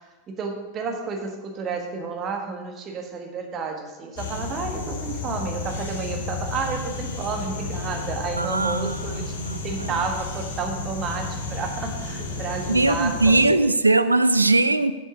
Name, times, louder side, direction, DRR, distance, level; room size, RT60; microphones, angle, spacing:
voice 1, 0.3-13.7, right 4 dB, 30° right, 1.3 m, -31 dB
sound 1, 4.2-13.5, left 3 dB, 60° left, 1.4 m, -32 dB
voice 2, 8.4-9.9 12.7-14.9, right 2 dB, 80° right, 0.4 m, -20 dB
7.6 x 7.6 x 4.9 m
figure-of-eight pair, 90°, 0 cm